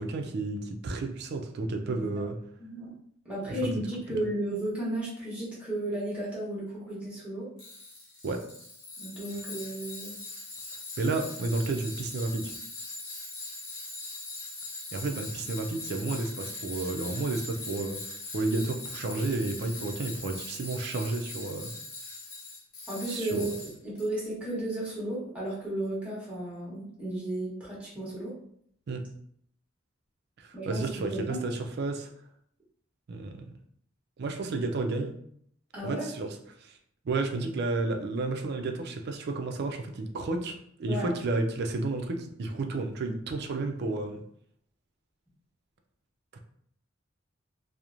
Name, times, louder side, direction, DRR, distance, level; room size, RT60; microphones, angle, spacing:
voice 1, 0.0-2.4 3.6-3.7 4.1-4.2 8.2-8.4 11.0-12.5 14.9-21.7 23.1-23.5 28.9-29.0 30.4-32.1 33.1-33.5 34.2-35.1 35.8-36.8 37.0-44.2 46.3-46.4, right 3 dB, 55° right, 4 dB, 0.4 m, -32 dB
voice 2, 2.6-2.9 3.2-7.5 9.0-10.1 22.9-23.5 23.8-28.3 30.5-31.4 35.7-36.1 40.9-41.1, right 1 dB, 5° right, -7 dB, 1.0 m, -34 dB
Tools, 7.6-24.1, left 2 dB, 55° left, 1.0 m, -41 dB
2.9 x 2.0 x 2.4 m, 0.67 s
head